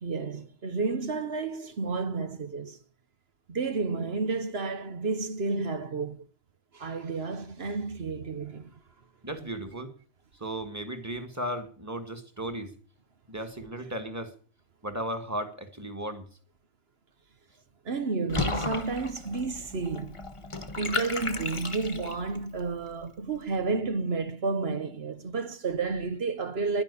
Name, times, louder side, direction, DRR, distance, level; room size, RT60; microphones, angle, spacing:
voice 1, 0.0-2.8 3.5-6.3 6.7-8.7 17.8-20.2 20.8-26.8, right 4 dB, 50° right, 1.1 m, -31 dB
voice 2, 9.2-9.9 10.4-12.7 13.3-14.4 14.8-16.3, right 1 dB, 10° right, 1.9 m, -35 dB
Water / Bathtub (filling or washing), 18.3-22.4, left 3 dB, 25° left, 1.1 m, -34 dB
11.0 x 10.0 x 8.4 m
omnidirectional pair, 1.4 m